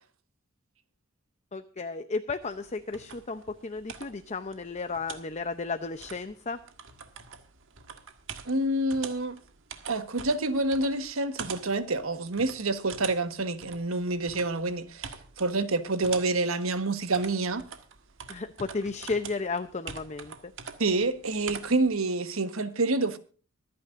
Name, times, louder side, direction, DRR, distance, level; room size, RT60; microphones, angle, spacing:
voice 1, 1.5-6.6 18.3-20.5, left 4 dB, 35° left, 0.7 m, -33 dB
sound 1, 2.4-21.9, right 6 dB, 65° right, 1.6 m, -45 dB
voice 2, 8.5-9.4 9.9-17.6 20.8-23.2, right 2 dB, 90° right, 1.3 m, -28 dB
25.0 x 9.6 x 2.6 m
head